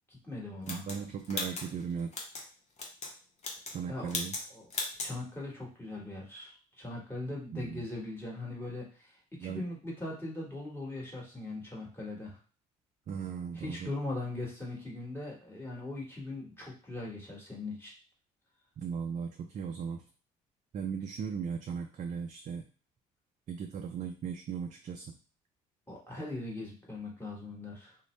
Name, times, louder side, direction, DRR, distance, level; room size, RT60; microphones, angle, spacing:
voice 1, 0.1-0.8 3.9-4.1 4.5-4.7 5.0-12.4 13.5-17.9 25.9-28.0, left 2 dB, 15° left, -4 dB, 1.5 m, -40 dB
sound 1, 0.7-2.4 2.8-3.1 3.4-3.8 4.1-4.4 4.7-5.1, left 3 dB, 40° left, 0.9 m, -37 dB
voice 2, 0.7-2.1 3.7-4.3 7.5-7.8 9.4-9.6 13.1-13.9 18.8-20.0 20.7-22.6 23.5-25.1, right 6 dB, 45° right, 4 dB, 0.4 m, -37 dB
2.6 x 2.1 x 3.1 m, 0.37 s
hypercardioid pair, 60°, 17 cm